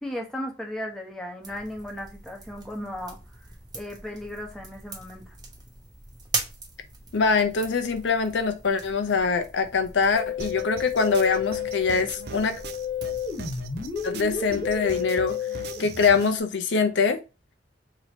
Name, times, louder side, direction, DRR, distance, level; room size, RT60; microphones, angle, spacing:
voice 1, 0.0-3.2 3.7-5.3, left 1 dB, 5° left, 0.9 m, -36 dB
sound 1, 1.4-14.9, right 3 dB, 25° right, 0.8 m, -41 dB
voice 2, 7.1-12.6 14.0-15.4 15.8-17.2, left 5 dB, 75° left, 0.5 m, -23 dB
Musical instrument, 10.1-16.2, left 7 dB, 25° left, 1.1 m, -32 dB
sound 2, 10.4-16.4, right 4 dB, 60° right, 0.5 m, -41 dB
3.0 x 2.8 x 4.3 m
head